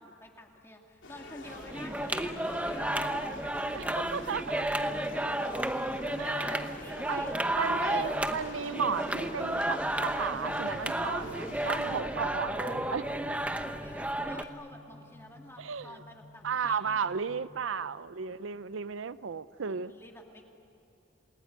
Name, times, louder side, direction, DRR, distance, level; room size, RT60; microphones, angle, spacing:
voice 1, 0.0-3.2 5.7-7.8 13.6-17.2 19.6-20.6, left 1 dB, 15° left, 1 dB, 2.3 m, -50 dB
sound 1, 1.0-12.0, left 2 dB, 75° left, 3.3 m, -47 dB
sound 2, 1.4-14.4, right 1 dB, 5° right, 0.9 m, -32 dB
voice 2, 3.7-4.7 6.2-6.7 7.1-7.2 7.5-13.0 15.6-16.0 16.4-19.9, right 6 dB, 90° right, 15 dB, 0.6 m, -34 dB
sound 3, 10.6-17.5, left 2 dB, 35° right, 4.4 m, -53 dB
28.5 x 20.0 x 9.6 m, 2.9 s
head